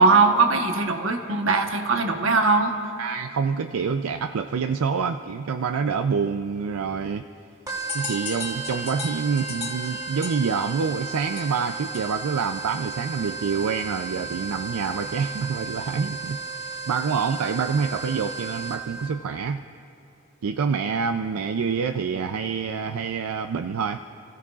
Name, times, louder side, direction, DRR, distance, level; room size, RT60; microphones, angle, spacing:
voice 1, 0.0-2.7, right 4 dB, 70° right, 4 dB, 1.1 m, -20 dB
voice 2, 3.0-7.3 7.9-19.6 20.4-24.0, right 5 dB, 90° right, 7 dB, 0.4 m, -27 dB
sound 1, 7.7-19.1, right 4 dB, 15° right, 1.1 m, -35 dB
sound 2, 7.9-12.4, left 5 dB, 30° left, 2.2 m, -37 dB
29.5 x 16.0 x 2.4 m, 2.7 s
head